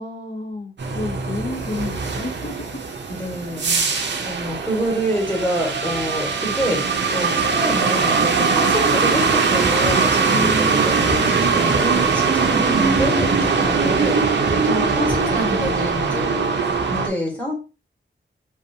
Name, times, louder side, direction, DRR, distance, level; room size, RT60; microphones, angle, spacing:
voice 1, 0.0-2.8 4.3-4.7 10.3-10.9, left 2 dB, 60° left, 0.7 m, -30 dB
sound 1, 0.8-17.1, right 4 dB, 70° right, 0.5 m, -21 dB
voice 2, 3.1-14.2 14.5-17.6, equal, 5° left, 1.1 m, -27 dB
sound 2, 9.6-15.8, right 1 dB, 15° right, 0.6 m, -34 dB
2.6 x 2.3 x 2.6 m
wide cardioid pair, 95°, 19 cm